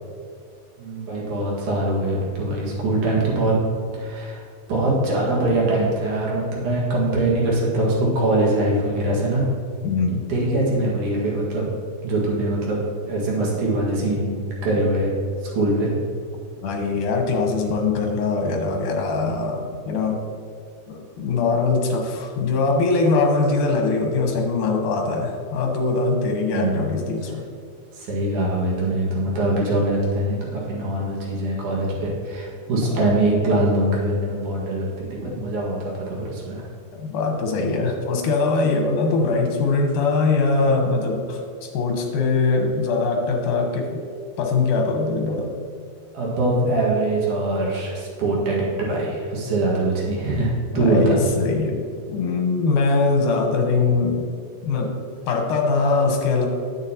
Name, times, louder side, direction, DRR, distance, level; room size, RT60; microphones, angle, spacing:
voice 1, 0.8-3.6 3.9-4.4 4.7-9.4 10.3-11.6 12.0-12.8 13.1-15.1 15.5-15.9 26.5-26.9 27.9-36.7 46.1-51.2, right 2 dB, 70° right, -4 dB, 3.1 m, -23 dB
voice 2, 9.8-10.2 16.6-20.2 20.9-27.5 32.8-33.0 36.9-44.0 44.4-45.5 50.7-54.3 54.6-54.9 55.3-56.5, left 3 dB, 80° left, 2 dB, 2.6 m, -22 dB
9.7 x 8.8 x 2.9 m, 2.2 s
omnidirectional pair, 3.6 m